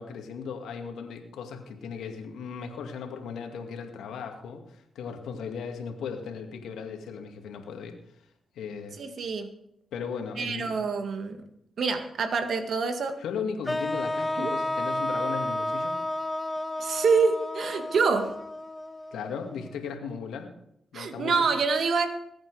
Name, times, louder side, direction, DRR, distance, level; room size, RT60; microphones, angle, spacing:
voice 1, 0.0-8.0 8.6-9.0 9.9-10.8 13.2-16.0 19.1-20.5 20.9-21.5, left 6 dB, 80° left, 4 dB, 2.2 m, -37 dB
voice 2, 9.0-9.5 10.4-11.5 11.8-13.2 14.4-14.5 16.8-18.4 20.9-22.1, right 5 dB, 65° right, 7 dB, 1.8 m, -26 dB
sound 1, 13.7-19.7, left 1 dB, 20° left, 0.7 m, -31 dB
21.0 x 9.1 x 4.9 m, 0.77 s
hypercardioid pair, 40°, 0 cm